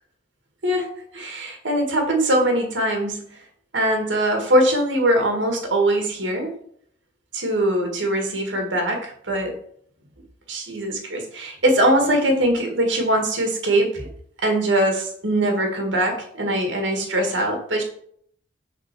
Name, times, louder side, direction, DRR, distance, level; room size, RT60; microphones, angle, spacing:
voice 1, 0.6-3.2 3.7-6.5 7.3-9.5 10.5-14.1 14.4-17.8, right 1 dB, 90° right, 3 dB, 1.7 m, -22 dB
6.0 x 3.9 x 5.9 m, 0.64 s
head